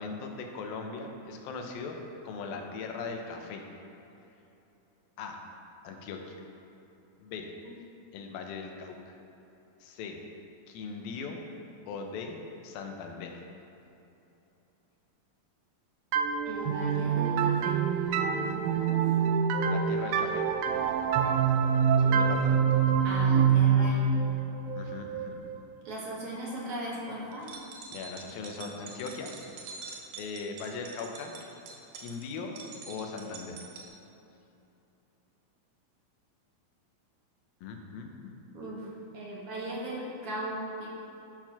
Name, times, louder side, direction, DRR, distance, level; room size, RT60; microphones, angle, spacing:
voice 1, 0.0-3.6 5.2-5.4 5.8-6.4 7.2-7.5 8.1-9.1 9.8-10.3 10.7-11.4 11.9-12.4 12.6-13.5 19.7-20.5 22.0-22.7 24.8-25.5 27.9-29.3 30.2-31.3 32.0-32.5 32.9-33.6 37.6-38.3, left 4 dB, 90° left, 3 dB, 2.7 m, -39 dB
sound 1, 16.1-25.7, right 6 dB, 90° right, 1.7 m, -26 dB
voice 2, 16.5-17.8 18.3-19.2 23.0-24.2 25.9-27.5 38.5-40.9, right 1 dB, 50° right, -5 dB, 2.0 m, -38 dB
sound 2, 27.3-33.9, right 4 dB, 70° right, 1.9 m, -45 dB
11.0 x 4.5 x 5.9 m, 2.9 s
omnidirectional pair, 4.1 m